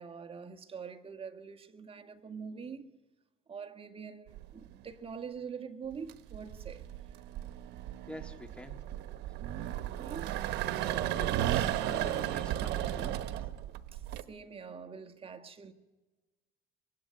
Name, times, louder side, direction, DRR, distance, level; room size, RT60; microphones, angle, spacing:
voice 1, 0.0-2.9 3.5-6.9 9.6-11.3 13.9-15.7, right 6 dB, 35° right, 2.0 m, -45 dB
sound 1, 4.3-4.8 5.9-14.2, right 12 dB, 85° right, 1.2 m, -34 dB
voice 2, 8.1-8.8 11.0-13.4, left 1 dB, 5° left, 2.6 m, -46 dB
25.0 x 21.5 x 9.9 m
cardioid pair, 110°, 17 cm